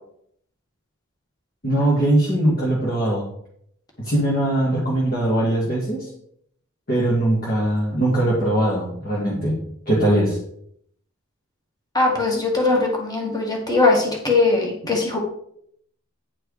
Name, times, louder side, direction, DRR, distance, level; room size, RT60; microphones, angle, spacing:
voice 1, 1.6-3.3 4.0-6.1 6.9-9.6 9.9-10.4, right 1 dB, 45° left, -5 dB, 2.1 m, -21 dB
voice 2, 11.9-15.2, left 3 dB, 20° left, -1 dB, 1.9 m, -20 dB
10.0 x 4.8 x 4.9 m, 0.69 s
head